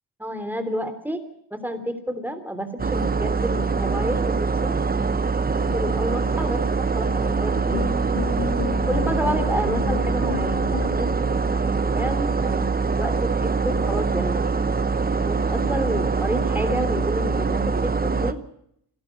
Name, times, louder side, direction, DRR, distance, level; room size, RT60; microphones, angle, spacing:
voice 1, 0.2-1.2 1.5-4.4 4.6-4.8 5.6-6.6 6.9-7.9 8.9-14.6 15.3-18.4, equal, 5° right, 9 dB, 3.2 m, -30 dB
sound 1, 2.8-18.3, right 4 dB, 25° right, 1.0 m, -23 dB
sound 2, 7.7-11.3, left 6 dB, 70° left, 2.4 m, -31 dB
28.0 x 12.0 x 8.2 m, 0.73 s
wide cardioid pair, 110°, 39 cm